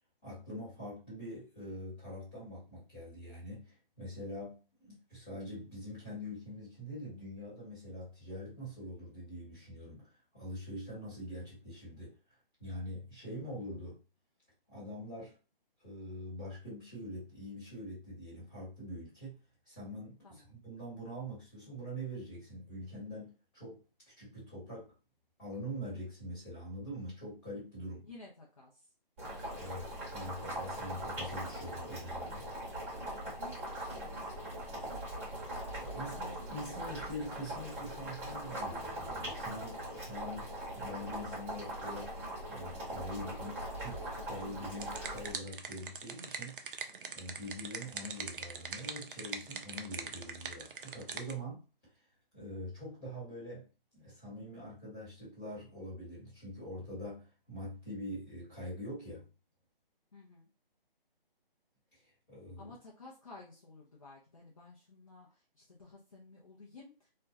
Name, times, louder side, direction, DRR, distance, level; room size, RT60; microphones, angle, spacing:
voice 1, 0.2-12.1 12.6-14.0 14.7-15.3 15.8-19.4 19.7-23.8 24.2-24.9 25.4-28.0 29.5-32.5 35.8-42.2 42.5-43.5 43.8-46.7 47.1-51.6 52.3-53.7 53.9-59.3 62.3-62.7, equal, 10° left, -10 dB, 1.1 m, -44 dB
voice 2, 20.2-20.6 28.0-28.9 33.4-35.2 43.1-43.5 60.1-60.5 62.6-67.1, left 3 dB, 40° left, -4 dB, 0.4 m, -54 dB
Boiling, 29.2-45.3, right 1 dB, 15° right, 1.0 m, -41 dB
sound 1, 44.8-51.3, right 5 dB, 65° right, 0.4 m, -43 dB
2.3 x 2.1 x 2.6 m, 0.33 s
figure-of-eight pair, 165°, 29 cm